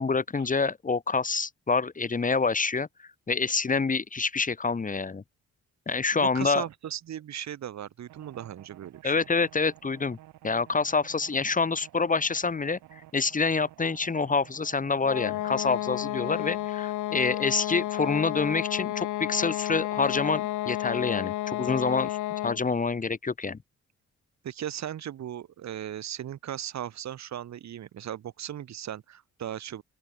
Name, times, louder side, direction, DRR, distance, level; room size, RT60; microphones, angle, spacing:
voice 1, 0.0-2.9 3.3-5.2 5.9-6.6 9.0-10.2 10.4-22.2 22.4-23.6, left 4 dB, 25° left, 1.8 m, -27 dB
voice 2, 6.2-9.1 24.4-29.8, right 10 dB, 65° right, 2.5 m, -37 dB
sound 1, 8.1-16.7, right 15 dB, 90° right, 7.4 m, -52 dB
sound 2, 15.0-22.7, left 15 dB, 90° left, 4.5 m, -31 dB
open air
cardioid pair, 90°, 30 cm